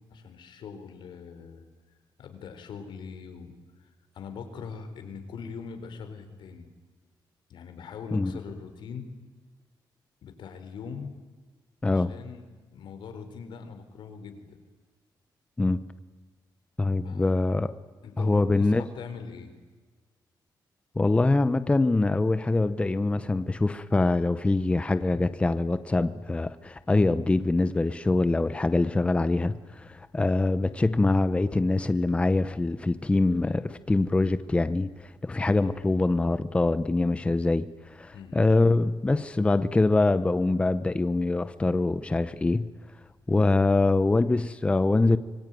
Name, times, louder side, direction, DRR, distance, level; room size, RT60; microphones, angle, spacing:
voice 1, 0.1-1.7 2.2-6.7 7.5-9.1 10.2-11.1 11.8-12.4 12.7-14.6 17.0-17.4 18.0-19.5 38.1-38.4, left 5 dB, 80° left, 7 dB, 4.3 m, -42 dB
voice 2, 11.8-12.1 15.6-15.8 16.8-17.7 18.2-18.8 21.0-42.7 43.3-45.2, left 2 dB, 15° left, 13 dB, 0.8 m, -24 dB
26.0 x 23.5 x 9.3 m, 1.3 s
wide cardioid pair, 140°, 8 cm